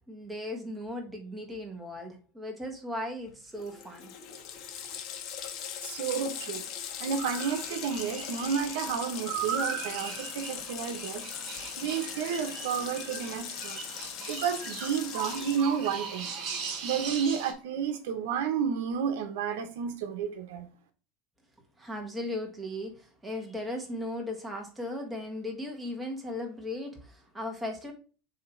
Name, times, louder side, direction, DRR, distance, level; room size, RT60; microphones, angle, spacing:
voice 1, 0.1-4.1 21.8-27.9, left 1 dB, 5° right, 1.4 m, -37 dB
Water tap faucet, 3.3-3.4 3.6-17.3, left 8 dB, 50° left, 1.2 m, -40 dB
voice 2, 5.8-6.7 7.0-11.3 11.8-13.8 14.3-16.3 16.8-20.7, right 7 dB, 85° right, 0.9 m, -31 dB
sound 1, 7.2-17.5, right 7 dB, 50° right, 1.5 m, -39 dB
7.4 x 2.9 x 4.4 m
supercardioid pair, 150°, 0 cm